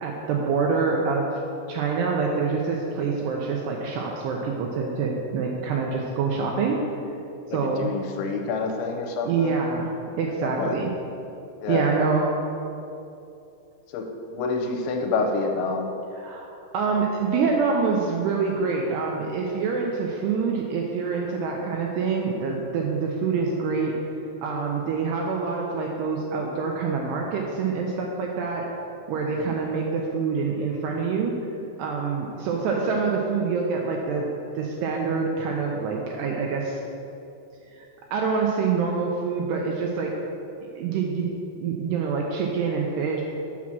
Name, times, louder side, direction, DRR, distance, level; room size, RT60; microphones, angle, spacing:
voice 1, 0.0-1.4 1.7-6.8 7.5-7.9 9.2-9.9 10.2-10.9 11.7-12.3 16.2-24.0 24.4-28.7 29.1-31.4 31.8-34.3 34.5-36.8 37.7-37.8 38.1-40.1 40.8-41.3 41.6-43.2, right 5 dB, 80° right, 0 dB, 2.5 m, -26 dB
voice 2, 7.5-9.6 10.4-10.8 11.6-11.9 13.9-14.1 14.3-15.9 29.4-29.5, left 4 dB, 80° left, 3 dB, 3.0 m, -28 dB
7.2 x 6.1 x 6.0 m, 2.7 s
omnidirectional pair, 5.3 m